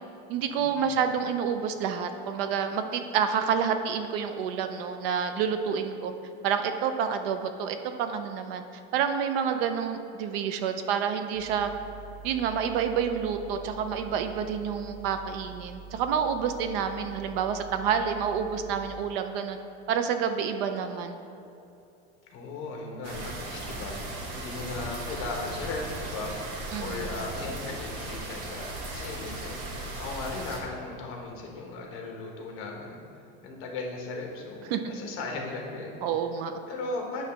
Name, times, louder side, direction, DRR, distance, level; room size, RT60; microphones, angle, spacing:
voice 1, 0.3-6.1 6.4-8.6 8.9-11.7 12.2-19.6 19.9-21.2 26.7-27.0 34.7-34.8 36.0-36.5, right 7 dB, 60° right, 8 dB, 0.6 m, -28 dB
sound 1, 11.3-18.9, right 6 dB, 5° right, 0.7 m, -46 dB
voice 2, 22.3-29.6 30.0-33.0 33.4-36.1 36.7-37.2, left 3 dB, 40° left, 0 dB, 1.2 m, -37 dB
sound 2, 23.0-30.6, right 1 dB, 80° right, 1.5 m, -37 dB
9.3 x 3.2 x 5.7 m, 2.7 s
supercardioid pair, 165°, 33 cm